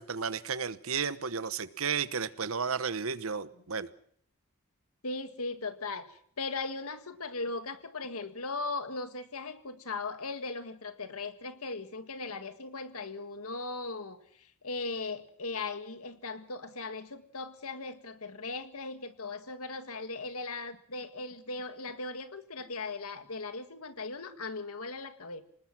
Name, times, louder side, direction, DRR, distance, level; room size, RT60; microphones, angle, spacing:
voice 1, 0.0-3.9, right 6 dB, 75° right, 15 dB, 1.0 m, -33 dB
voice 2, 5.0-25.4, left 3 dB, 85° left, 9 dB, 1.8 m, -38 dB
25.5 x 19.5 x 6.0 m, 0.62 s
head